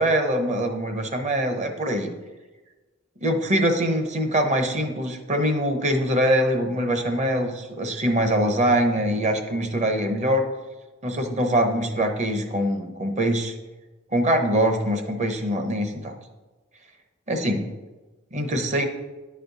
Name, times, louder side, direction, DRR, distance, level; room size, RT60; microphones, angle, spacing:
voice 1, 0.0-2.1 3.2-10.4 11.0-13.5 14.1-16.1 17.3-17.7 18.3-18.8, equal, 35° right, 5 dB, 0.8 m, -23 dB
10.0 x 4.3 x 4.0 m, 1.2 s
head